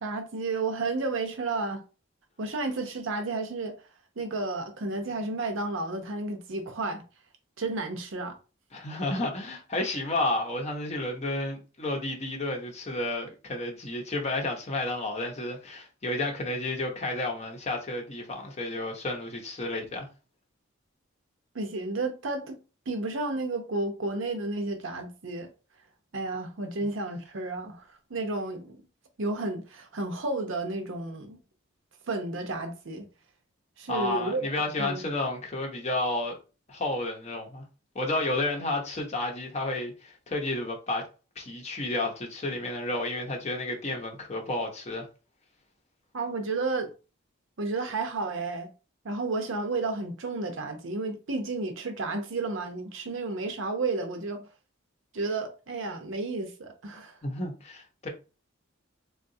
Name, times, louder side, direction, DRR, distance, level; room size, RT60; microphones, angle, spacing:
voice 1, 0.0-1.8 2.4-3.7 4.2-7.0 7.6-8.4 21.5-22.6 22.9-25.5 26.1-28.7 29.2-31.4 32.1-33.0 33.8-34.4 34.8-35.0 46.1-46.9 47.6-48.7 49.0-54.4 55.1-57.2, right 3 dB, 65° right, 0.7 m, -32 dB
voice 2, 8.7-20.1 33.9-36.4 36.7-37.6 37.9-41.1 41.4-45.1 57.2-58.1, left 2 dB, 35° left, 0.7 m, -31 dB
3.7 x 2.3 x 2.6 m
head